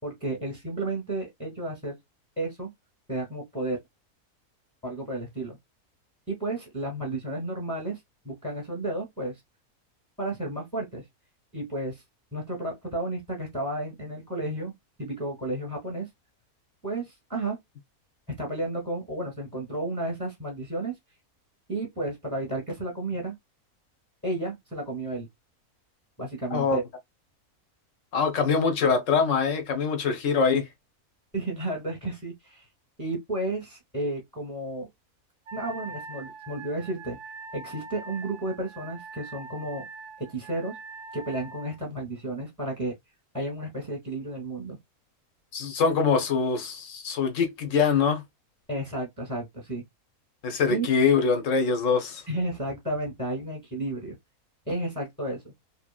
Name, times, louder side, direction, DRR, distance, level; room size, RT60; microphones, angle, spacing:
voice 1, 0.0-2.0 2.4-2.7 3.1-3.8 4.8-5.6 6.3-8.0 8.2-9.4 10.2-11.0 11.5-12.0 12.3-14.7 15.0-16.1 16.8-17.6 18.4-20.9 21.7-23.3 24.2-25.3 26.2-26.8 31.3-32.6 33.0-34.9 35.5-37.2 37.5-39.8 40.2-40.8 41.1-42.9 43.3-44.8 48.7-49.8 50.7-50.9 52.3-54.2 54.7-55.5, right 2 dB, 5° left, 0.9 m, -32 dB
voice 2, 28.1-30.7 45.5-48.2 50.4-52.2, left 5 dB, 60° left, 1.0 m, -24 dB
Wind instrument woodwind instrument, 35.5-41.8, right 3 dB, 90° right, 1.1 m, -43 dB
2.8 x 2.8 x 2.3 m
omnidirectional pair, 1.6 m